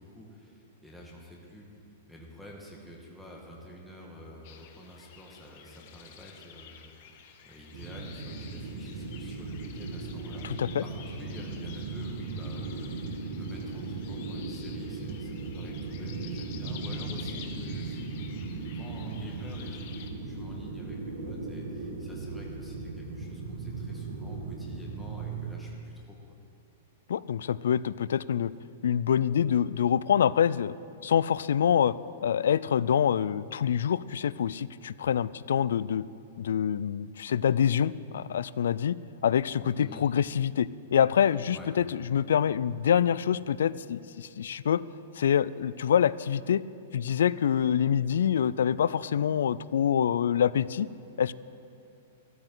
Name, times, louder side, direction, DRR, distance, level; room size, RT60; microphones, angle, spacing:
voice 1, 0.0-1.7 2.1-6.9 7.4-18.1 18.5-26.2 39.7-40.0 41.5-41.7, equal, ahead, -4 dB, 1.6 m, -48 dB
sound 1, 4.4-20.1, left 8 dB, 45° left, 1.1 m, -50 dB
sound 2, 7.7-25.5, right 3 dB, 85° right, 1.9 m, -37 dB
voice 2, 10.4-10.8 27.1-28.5 28.8-30.7 31.0-32.0 32.2-36.1 36.4-39.0 39.2-44.8 45.2-46.6 46.9-50.9 51.2-51.3, left 8 dB, 85° left, 19 dB, 0.3 m, -26 dB
15.0 x 13.5 x 3.9 m, 2.6 s
supercardioid pair, 165°, 0 cm